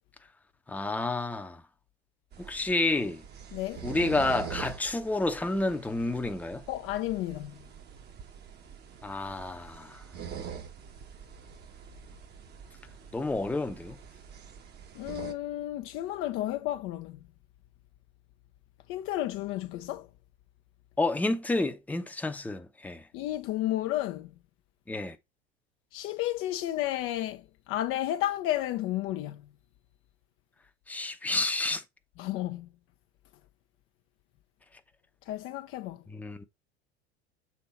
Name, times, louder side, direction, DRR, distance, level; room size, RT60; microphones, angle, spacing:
voice 1, 0.7-1.6 2.4-3.2 3.8-6.6 9.0-10.0 13.1-14.0 21.0-23.0 24.9-25.2 30.9-31.8 36.1-36.4, left 2 dB, 5° left, 0.8 m, -30 dB
sound 1, 2.3-15.3, right 8 dB, 30° right, 1.1 m, -45 dB
voice 2, 3.5-3.8 6.7-7.5 15.0-17.2 18.9-20.1 23.1-24.3 25.9-29.4 32.2-32.7 35.3-36.0, left 14 dB, 40° left, 0.6 m, -32 dB
7.3 x 3.7 x 4.3 m
figure-of-eight pair, 80°, 33 cm